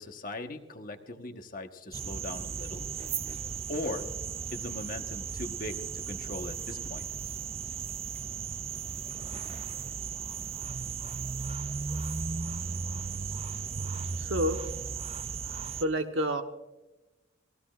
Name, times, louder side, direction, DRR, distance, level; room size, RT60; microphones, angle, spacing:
voice 1, 0.0-2.9 3.7-4.1 4.5-7.1, left 2 dB, 40° left, 5 dB, 1.2 m, -39 dB
sound 1, 1.9-15.8, right 6 dB, 30° right, 0.3 m, -36 dB
voice 2, 14.2-14.6 15.5-16.4, equal, 70° right, 5 dB, 1.3 m, -29 dB
21.0 x 15.5 x 2.5 m, 1.1 s
head